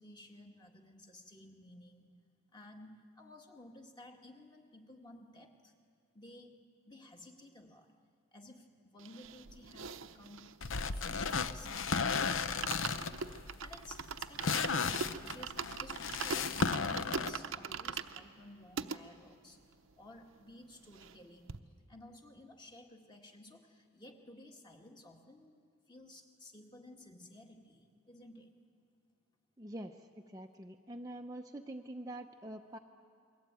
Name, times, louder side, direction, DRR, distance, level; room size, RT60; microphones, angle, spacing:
voice 1, 0.0-2.1 2.5-5.7 6.1-6.5 6.9-7.9 8.3-10.5 10.9-12.0 12.4-12.8 13.6-19.6 20.0-21.6 21.9-25.6 25.9-28.5, left 1 dB, 20° left, 2 dB, 1.9 m, -54 dB
sound 1, 9.0-11.8 12.1-12.2 12.4-19.0 19.6-19.7 19.8-19.9 20.2-21.2 21.5-21.6, right 5 dB, 75° right, 0.9 m, -42 dB
sound 2, 10.6-17.4, left 5 dB, 70° left, 0.9 m, -35 dB
voice 2, 29.6-30.0 30.3-32.8, right 1 dB, 15° right, 3 dB, 0.7 m, -45 dB
29.5 x 22.0 x 9.0 m, 2.3 s
head